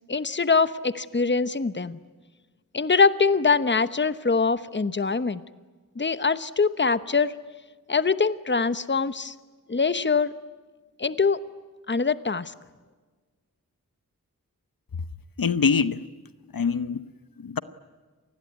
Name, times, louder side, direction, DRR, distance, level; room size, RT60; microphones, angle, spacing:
voice 1, 0.1-2.0 2.7-5.4 6.0-7.3 7.9-9.3 9.7-10.3 11.0-11.4 11.9-12.5, left 4 dB, 35° left, 1.0 m, -23 dB
voice 2, 15.4-16.1 16.5-17.1 17.4-17.6, left 5 dB, 80° left, 1.0 m, -24 dB
28.0 x 20.5 x 9.4 m
wide cardioid pair, 80°, 34 cm